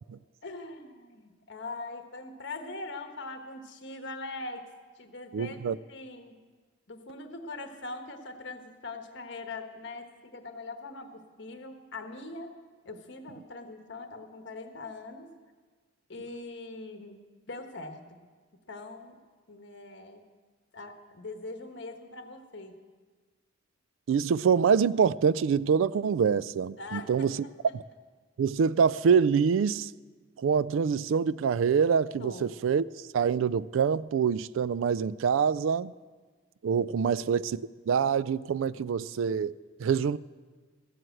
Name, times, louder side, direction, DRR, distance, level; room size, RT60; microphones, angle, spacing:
voice 1, 0.4-4.6 5.0-6.4 6.9-12.5 12.8-15.3 16.1-17.2 17.5-18.0 18.5-19.2 19.5-20.2 20.7-22.8 26.8-27.3 27.7-27.8 32.2-32.5 36.7-37.2, left 3 dB, 65° left, 1.3 m, -42 dB
voice 2, 5.3-5.8 24.1-27.4 27.7-27.8 28.4-29.9 30.4-32.8 33.1-35.9 36.6-40.2, right 6 dB, 80° right, 0.3 m, -25 dB
15.0 x 7.8 x 7.7 m
head